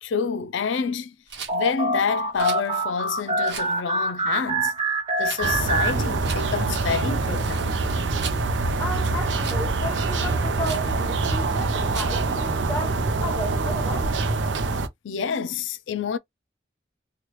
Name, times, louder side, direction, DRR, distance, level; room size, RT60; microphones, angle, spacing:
voice 1, 0.0-1.1 1.5-4.7 5.2-7.9 15.0-16.2, left 6 dB, 90° left, 0.4 m, -28 dB
Rattle, 1.3-1.5 2.3-2.7 3.4-3.7 5.2-5.4 6.2-6.4 7.2-8.4 9.4-9.7 10.6-10.9 11.9-12.2, right 7 dB, 70° right, 1.0 m, -37 dB
sound 1, 1.5-6.6, right 2 dB, 30° right, 1.0 m, -26 dB
sound 2, 5.4-14.9, right 3 dB, 85° right, 0.6 m, -25 dB
voice 2, 8.8-14.4, equal, 15° left, 0.8 m, -34 dB
3.0 x 2.3 x 3.0 m
head